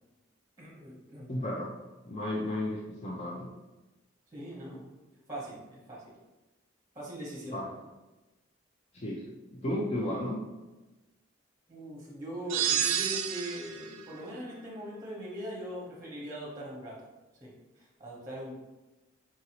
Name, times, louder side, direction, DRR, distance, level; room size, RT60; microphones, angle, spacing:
voice 1, 0.6-1.4 4.3-4.9 5.3-5.6 5.9-6.1 6.9-7.6 11.7-17.1 17.4-17.5 17.8-18.5, equal, 15° right, -4 dB, 0.8 m, -41 dB
voice 2, 1.3-1.7 2.0-3.5 7.5-7.7 8.9-10.4, left 1 dB, 35° left, -3 dB, 0.4 m, -33 dB
sound 1, 12.5-13.9, right 9 dB, 75° right, 0.4 m, -29 dB
4.7 x 2.6 x 2.9 m, 1.1 s
head